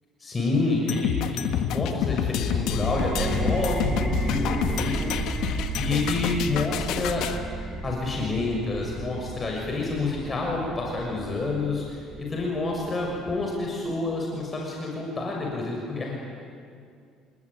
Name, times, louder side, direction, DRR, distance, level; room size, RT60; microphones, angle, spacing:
voice 1, 0.2-5.5 5.8-7.2 7.8-16.1, left 3 dB, 25° left, -1 dB, 6.4 m, -28 dB
sound 1, 0.9-7.4, left 9 dB, 70° left, 1.8 m, -29 dB
sound 2, 2.3-13.7, right 3 dB, 20° right, 5.4 m, -33 dB
29.0 x 20.0 x 9.8 m, 2.3 s
cardioid pair, 105°, 0 cm